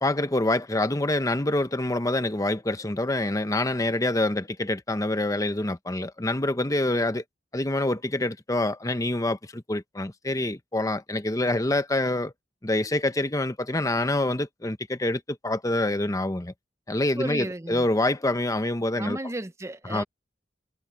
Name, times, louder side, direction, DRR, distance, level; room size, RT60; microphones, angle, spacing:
voice 1, 0.0-7.2 7.5-12.3 12.6-16.5 16.9-19.2 19.9-20.0, left 1 dB, 20° left, 1.0 m, -26 dB
voice 2, 17.2-17.9 19.0-20.0, right 1 dB, 15° right, 0.8 m, -34 dB
head